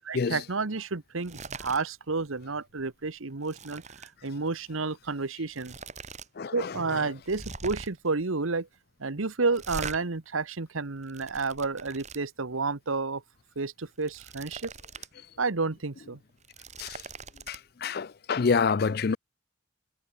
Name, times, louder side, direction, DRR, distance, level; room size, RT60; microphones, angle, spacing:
voice 1, 0.0-5.8 6.5-8.7 9.0-13.2 13.6-14.7 15.4-16.2, right 4 dB, 90° right, 1.2 m, -31 dB
sound 1, 1.2-1.8 2.2-2.4 2.8-4.1 5.1-5.2 5.5-6.3 6.6-6.7 7.2-8.1 9.5-10.0 10.8-12.2 13.8-15.1 15.5-15.6 16.3-17.6, right 4 dB, 35° right, 4.0 m, -42 dB
voice 2, 6.4-7.1 16.8-17.0 17.5-19.2, left 5 dB, 50° left, 0.4 m, -28 dB
head